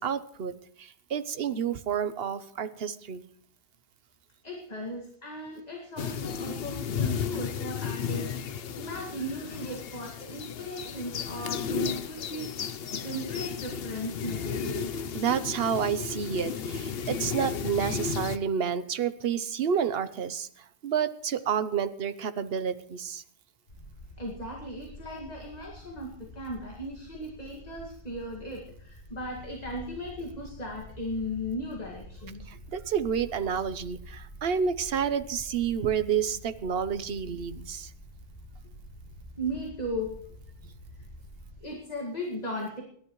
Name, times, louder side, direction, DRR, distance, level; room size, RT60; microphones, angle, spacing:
voice 1, 0.0-3.2 15.1-20.5 20.8-23.2 32.5-37.9, right 7 dB, 60° right, 12 dB, 1.1 m, -29 dB
voice 2, 4.4-14.9 24.2-32.5 39.4-40.1 41.6-42.8, equal, 35° left, 0 dB, 2.2 m, -37 dB
sound 1, 6.0-18.4, left 7 dB, 60° left, 0.9 m, -34 dB
sound 2, 23.7-41.6, left 1 dB, 90° left, 7.1 m, -48 dB
28.0 x 11.5 x 3.2 m, 0.64 s
omnidirectional pair, 1.2 m